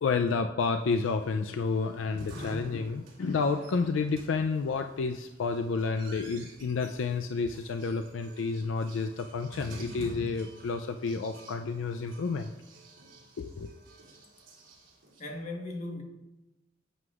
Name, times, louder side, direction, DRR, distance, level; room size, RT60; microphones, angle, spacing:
voice 1, 0.0-12.5 13.4-13.7, left 4 dB, 75° left, 0.4 m, -30 dB
sound 1, 0.9-15.2, right 1 dB, 90° right, 2.4 m, -49 dB
voice 2, 15.2-16.0, left 2 dB, 35° left, 1.2 m, -37 dB
11.0 x 7.8 x 2.4 m
head